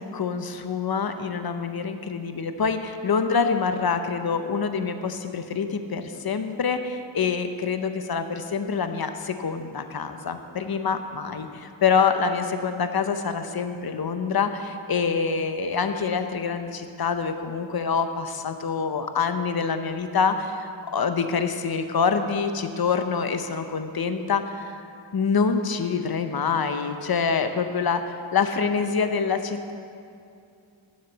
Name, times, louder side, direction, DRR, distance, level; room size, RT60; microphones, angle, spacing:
voice 1, 0.0-24.8 25.1-29.7, left 5 dB, 50° left, 8 dB, 0.7 m, -26 dB
9.7 x 7.4 x 7.2 m, 2.5 s
wide cardioid pair, 75°, 48 cm